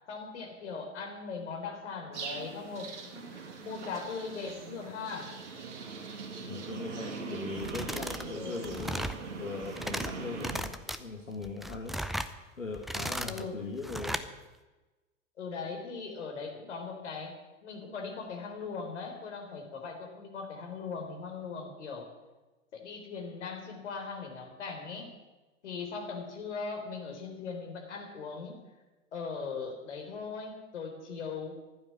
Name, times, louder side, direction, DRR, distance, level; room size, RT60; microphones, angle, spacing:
voice 1, 0.1-5.3 8.4-8.6 13.2-13.6 15.4-22.1 22.7-25.1 25.6-28.6 29.1-31.5, left 5 dB, 60° left, 3 dB, 4.0 m, -39 dB
sound 1, 2.1-10.6, right 4 dB, 65° right, 2.3 m, -41 dB
voice 2, 6.4-9.1 9.4-11.9 12.6-14.2, left 4 dB, 85° left, 1 dB, 2.0 m, -40 dB
sound 2, 7.6-8.3 8.6-9.2 9.6-10.1 10.4-11.0 11.4-12.3 12.7-13.4 13.8-14.3, equal, ahead, 0.4 m, -36 dB
15.0 x 12.0 x 7.2 m, 1.2 s
figure-of-eight pair, 90°, 38 cm